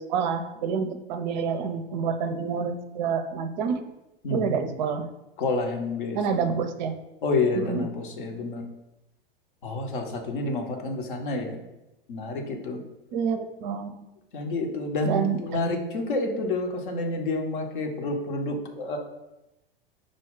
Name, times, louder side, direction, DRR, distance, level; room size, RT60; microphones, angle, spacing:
voice 1, 0.0-3.8 4.3-5.1 6.1-6.9 7.5-7.9 13.1-14.0 15.0-15.4, right 6 dB, 50° right, 9 dB, 0.4 m, -28 dB
voice 2, 4.2-4.7 5.4-6.6 7.2-8.6 9.6-11.7 12.1-12.8 14.3-19.0, left 2 dB, 60° left, 3 dB, 0.8 m, -29 dB
5.0 x 2.2 x 3.6 m, 0.94 s
figure-of-eight pair, 90°, 29 cm